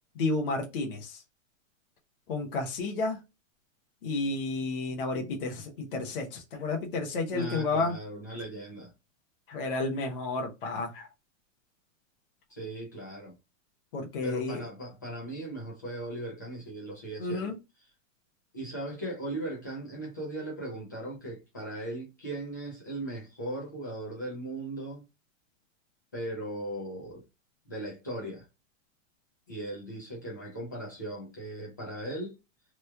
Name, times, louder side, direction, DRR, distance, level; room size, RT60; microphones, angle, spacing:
voice 1, 0.1-1.2 2.3-3.2 4.0-8.0 9.5-11.1 13.9-14.6 17.2-17.6, left 3 dB, 45° left, 0.8 m, -31 dB
voice 2, 7.3-8.9 12.5-13.3 14.2-17.5 18.5-25.0 26.1-27.2 27.7-28.5 29.5-32.4, right 1 dB, 15° left, 0.4 m, -38 dB
3.0 x 2.3 x 3.3 m
hypercardioid pair, 180°, 39 cm